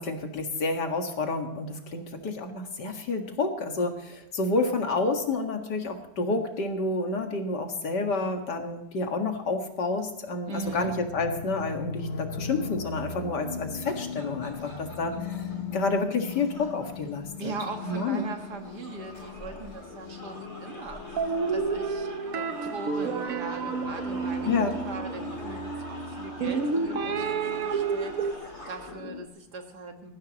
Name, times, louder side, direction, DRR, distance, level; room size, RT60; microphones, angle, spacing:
voice 1, 0.0-15.1 15.7-17.5 17.8-18.3 24.5-24.7, left 3 dB, 85° left, 4 dB, 2.4 m, -29 dB
voice 2, 10.5-10.9 14.6-15.0 17.4-30.1, right 3 dB, 75° right, 4 dB, 2.3 m, -40 dB
sound 1, 10.6-29.3, left 4 dB, 45° left, 1.0 m, -39 dB
sound 2, 13.5-28.9, left 1 dB, 30° left, 5.2 m, -46 dB
sound 3, 21.2-25.4 26.4-28.3, right 5 dB, 60° right, 1.4 m, -30 dB
19.0 x 14.5 x 3.0 m, 0.93 s
omnidirectional pair, 1.8 m